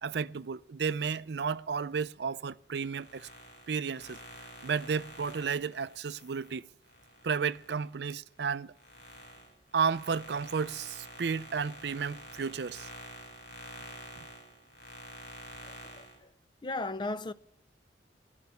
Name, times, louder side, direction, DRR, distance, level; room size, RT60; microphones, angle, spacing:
voice 1, 0.0-3.3 3.7-4.2 4.6-6.6 7.2-8.7 9.7-12.9, right 6 dB, 65° right, 0.5 m, -32 dB
sound 1, 2.8-7.9 8.3-16.2, equal, 65° left, 5.1 m, -49 dB
voice 2, 15.7-16.0 16.6-17.3, left 2 dB, 25° left, 0.5 m, -35 dB
13.0 x 12.0 x 6.9 m
head